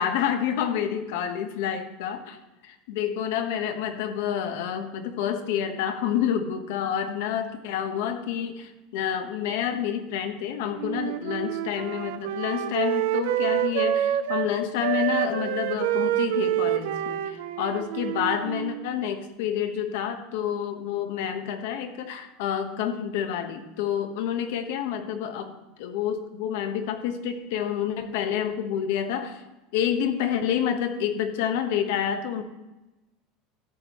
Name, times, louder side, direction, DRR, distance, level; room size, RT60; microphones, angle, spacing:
voice 1, 0.0-2.4 2.6-29.4 29.7-32.4, left 9 dB, 70° left, 7 dB, 1.1 m, -28 dB
Wind instrument woodwind instrument, 10.8-14.5 14.8-18.9, right 12 dB, 75° right, 0.5 m, -27 dB
13.5 x 8.2 x 3.0 m, 1.0 s
cardioid pair, 175°, 0 cm